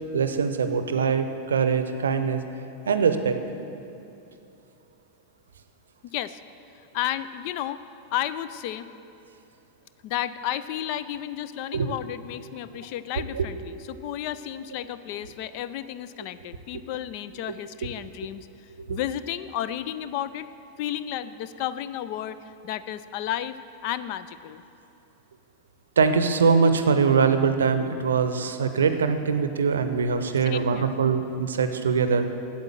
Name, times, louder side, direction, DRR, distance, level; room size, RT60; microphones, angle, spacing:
voice 1, 0.1-2.4 2.9-3.4 11.7-11.9 13.2-13.5 18.8-19.0 26.0-32.3, right 5 dB, 70° right, 9 dB, 0.6 m, -23 dB
voice 2, 6.0-6.4 6.9-7.8 8.1-8.9 10.0-18.5 18.9-20.5 20.8-24.6 30.4-31.0, left 11 dB, 45° left, 14 dB, 0.4 m, -32 dB
8.9 x 7.8 x 7.4 m, 2.8 s
figure-of-eight pair, 90°, 0 cm